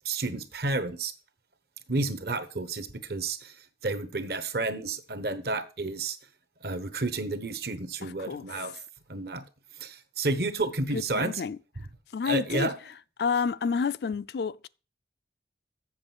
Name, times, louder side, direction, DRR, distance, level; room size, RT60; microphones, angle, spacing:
voice 1, 0.0-1.1 1.9-3.6 3.8-6.2 6.6-8.8 9.1-9.4 9.8-11.4 12.3-12.7, right 2 dB, 60° right, 1.0 m, -31 dB
voice 2, 8.0-8.6 10.9-11.6 12.1-12.7 13.2-14.7, left 5 dB, 65° left, 0.4 m, -30 dB
7.5 x 7.0 x 6.0 m
head